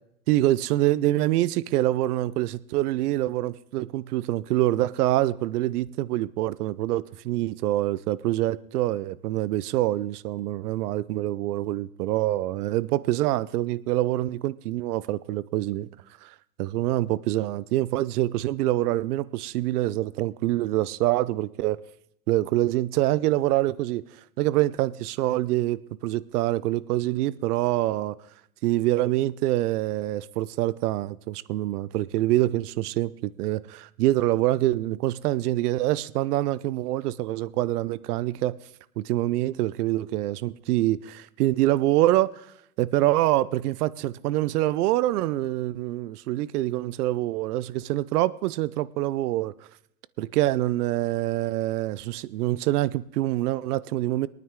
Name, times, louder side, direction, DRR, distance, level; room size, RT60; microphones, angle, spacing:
voice 1, 0.3-15.9 16.2-21.8 22.3-24.0 24.4-28.2 28.6-38.6 39.0-42.5 42.8-49.7 50.2-54.3, right 15 dB, 75° right, 0.7 m, -25 dB
22.5 x 9.4 x 3.7 m
hypercardioid pair, 110°, 46 cm